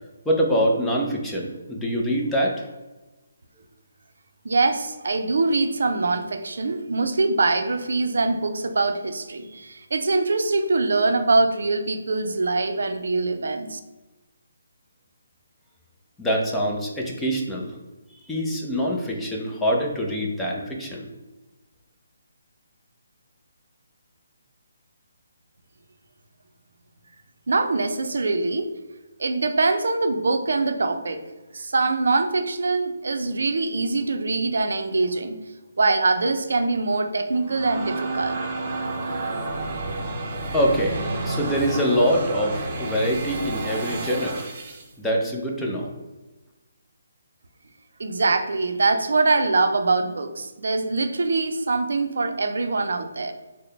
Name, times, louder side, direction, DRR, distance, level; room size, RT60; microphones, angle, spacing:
voice 1, 0.3-2.7 16.2-17.7 18.2-21.1 40.5-41.0 41.2-44.5 45.0-45.9, equal, 5° left, -2 dB, 0.5 m, -24 dB
voice 2, 4.4-13.8 27.5-28.7 29.2-31.2 31.5-35.4 35.8-38.4 48.0-53.3, right 3 dB, 75° right, 8 dB, 0.5 m, -23 dB
sound 1, 37.2-44.9, right 2 dB, 40° right, 0.7 m, -30 dB
3.8 x 2.1 x 3.3 m, 1.1 s
hypercardioid pair, 155°, 0 cm